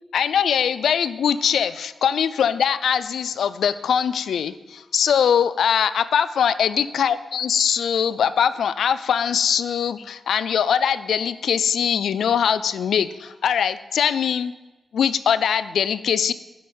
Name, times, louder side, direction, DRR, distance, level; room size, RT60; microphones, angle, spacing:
voice 1, 0.1-14.5 14.9-16.3, left 8 dB, 90° left, 14 dB, 0.3 m, -22 dB
6.2 x 5.8 x 7.1 m, 1.1 s
cardioid pair, 85°, 0 cm